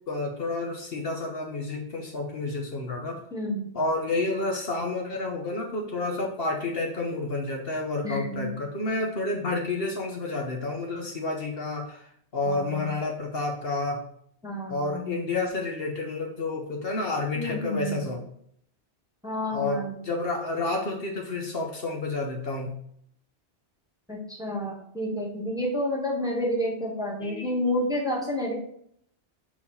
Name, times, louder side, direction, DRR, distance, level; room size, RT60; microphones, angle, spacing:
voice 1, 0.1-3.2 3.7-12.1 12.3-14.0 14.7-18.2 19.5-22.7 27.2-27.6, left 2 dB, 60° left, 1 dB, 1.2 m, -30 dB
voice 2, 3.3-3.7 8.0-8.5 12.4-12.9 14.4-15.3 17.3-18.1 19.2-20.0 24.1-28.5, left 1 dB, 5° right, -1 dB, 1.2 m, -30 dB
4.6 x 4.2 x 5.7 m, 0.67 s
omnidirectional pair, 1.2 m